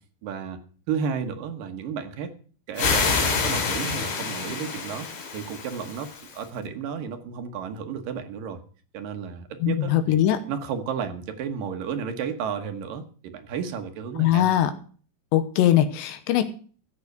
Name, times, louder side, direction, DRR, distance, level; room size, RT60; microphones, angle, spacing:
voice 1, 0.2-0.6 0.9-2.3 2.7-5.1 5.3-8.6 8.9-10.2 10.5-14.5, right 7 dB, 65° right, 7 dB, 2.5 m, -32 dB
sound 1, 2.8-6.4, left 5 dB, 60° left, 4.9 m, -27 dB
voice 2, 9.6-10.4 14.2-14.7 15.3-16.5, left 12 dB, 85° left, 10 dB, 3.1 m, -21 dB
15.5 x 7.1 x 6.6 m, 0.42 s
omnidirectional pair, 5.1 m